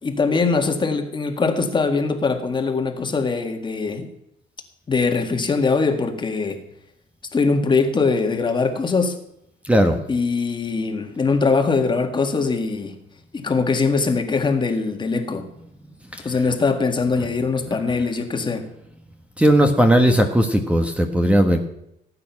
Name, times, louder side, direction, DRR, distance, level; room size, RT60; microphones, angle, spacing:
voice 1, 0.0-4.1 4.9-6.6 7.3-9.2 10.1-13.0 13.3-15.5 16.2-18.7, left 4 dB, 30° left, 5 dB, 1.9 m, -22 dB
voice 2, 9.6-10.0 16.1-16.3 19.4-21.6, equal, 5° right, 5 dB, 1.4 m, -17 dB
17.5 x 8.8 x 6.0 m, 0.80 s
cardioid pair, 110°, 17 cm